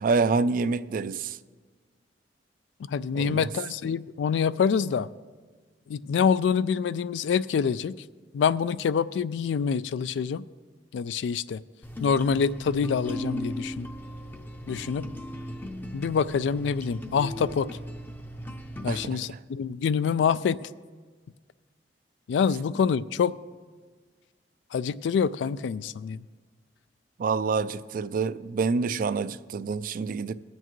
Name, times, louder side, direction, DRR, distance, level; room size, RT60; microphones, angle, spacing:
voice 1, 0.0-1.4 3.1-3.5 18.9-19.4 27.2-30.3, right 4 dB, 50° right, 0.3 m, -27 dB
voice 2, 2.9-5.1 5.9-8.0 8.3-10.4 10.9-11.6 12.0-13.9 14.7-15.1 15.9-17.7 18.8-20.7 22.3-23.4 24.7-26.2, left 6 dB, 85° left, 0.3 m, -26 dB
sound 1, 11.8-19.1, equal, 10° left, 0.5 m, -37 dB
21.5 x 7.9 x 3.1 m
head